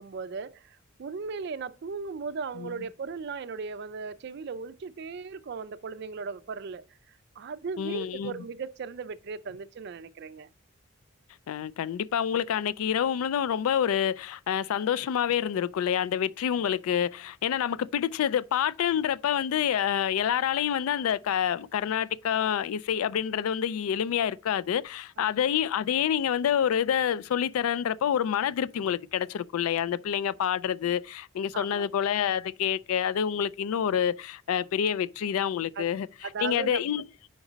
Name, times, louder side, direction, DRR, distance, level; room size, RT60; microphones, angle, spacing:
voice 1, 0.0-6.8 7.4-10.5 31.5-31.9 35.8-35.9 36.2-36.8, right 5 dB, 50° right, 0.4 m, -37 dB
voice 2, 7.8-8.4 11.5-36.1 36.4-37.0, left 9 dB, 90° left, 0.3 m, -27 dB
5.2 x 4.9 x 3.9 m
head